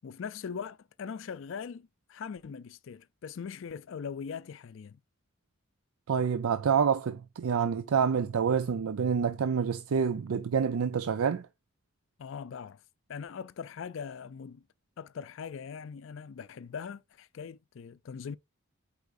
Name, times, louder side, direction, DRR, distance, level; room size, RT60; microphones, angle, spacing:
voice 1, 0.0-5.0 12.2-12.8 13.1-14.6 15.0-18.4, left 6 dB, 65° left, 0.4 m, -41 dB
voice 2, 6.1-11.5, right 6 dB, 85° right, 0.4 m, -27 dB
8.1 x 4.9 x 2.5 m
head